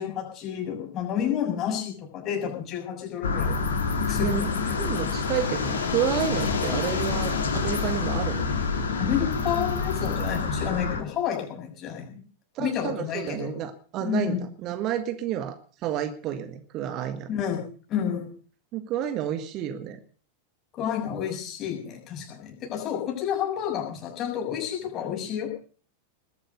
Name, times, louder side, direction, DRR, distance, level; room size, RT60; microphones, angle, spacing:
voice 1, 0.0-3.6 4.1-4.8 9.0-12.2 12.6-13.5 14.0-14.4 17.3-17.6 17.9-18.3 20.8-25.5, left 9 dB, 30° left, 1 dB, 6.8 m, -30 dB
sound 1, 3.2-11.0, left 4 dB, 65° left, 2.5 m, -27 dB
voice 2, 4.2-4.5 4.8-8.5 12.5-17.3 18.7-20.0, right 10 dB, 35° right, 8 dB, 1.6 m, -30 dB
20.5 x 8.8 x 6.8 m, 0.42 s
figure-of-eight pair, 90°, 0 cm